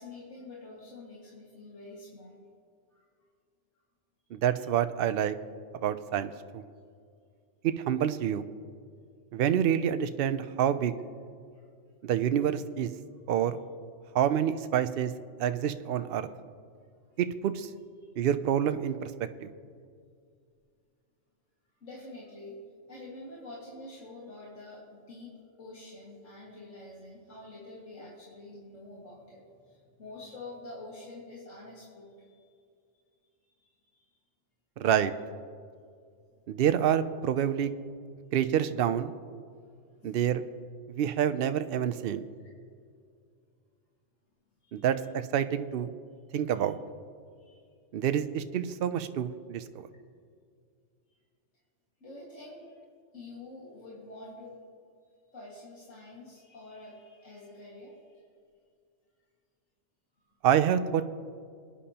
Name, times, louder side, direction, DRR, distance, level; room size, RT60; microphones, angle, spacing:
voice 1, 0.0-2.4 2.9-3.0 4.6-4.7 11.5-11.7 18.0-18.1 21.8-32.5 33.2-34.2 40.0-40.2 44.6-44.8 46.5-46.7 47.4-47.6 51.1-51.2 52.0-52.8 53.1-54.6 55.3-58.3 60.2-60.3, left 2 dB, 90° left, -5 dB, 2.2 m, -47 dB
voice 2, 4.3-5.3 5.8-6.7 7.6-8.4 9.3-11.0 12.0-12.9 13.3-13.6 14.1-15.1 15.4-16.3 17.2-17.7 18.2-19.1 19.4-19.5 34.8-35.1 36.5-37.7 38.3-39.1 40.0-40.4 40.9-42.3 44.7-45.9 46.3-46.8 47.9-49.9 60.4-61.0, right 9 dB, 60° right, 11 dB, 0.7 m, -27 dB
23.5 x 9.9 x 2.9 m, 2.3 s
omnidirectional pair, 1.3 m